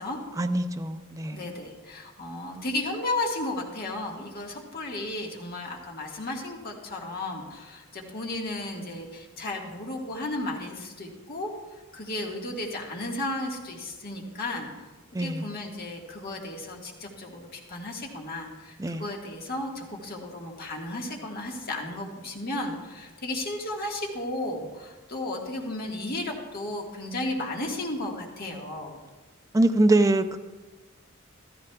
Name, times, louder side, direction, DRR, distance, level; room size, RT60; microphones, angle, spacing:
voice 1, 0.4-1.4 15.1-15.5 18.8-19.1 29.5-30.4, right 2 dB, 15° right, 7 dB, 0.4 m, -23 dB
voice 2, 1.3-11.5 11.9-14.7 15.2-29.0, left 2 dB, 45° left, 0 dB, 1.6 m, -34 dB
14.0 x 14.0 x 2.3 m, 1.2 s
head